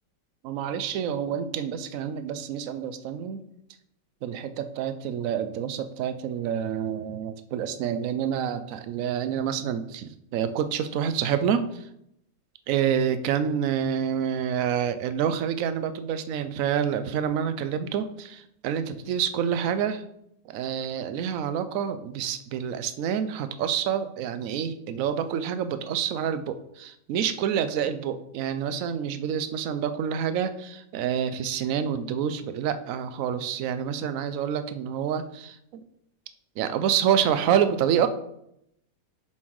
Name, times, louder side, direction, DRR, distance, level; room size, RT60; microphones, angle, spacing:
voice 1, 0.4-3.5 4.2-11.9 12.7-20.0 20.5-35.8 36.6-38.1, right 8 dB, 65° right, 11 dB, 0.9 m, -28 dB
7.2 x 4.4 x 4.7 m, 0.77 s
omnidirectional pair, 1.8 m